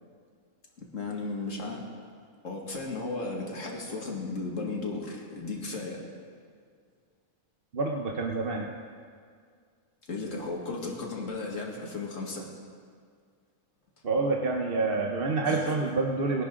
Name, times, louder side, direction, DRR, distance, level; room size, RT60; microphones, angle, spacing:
voice 1, 0.8-1.8 2.4-6.0 10.1-12.5 15.4-15.8, left 3 dB, 70° left, -1 dB, 2.4 m, -35 dB
voice 2, 7.7-8.7 14.0-16.4, right 3 dB, 50° right, 1 dB, 1.0 m, -27 dB
22.0 x 11.0 x 3.8 m, 2.1 s
omnidirectional pair, 1.4 m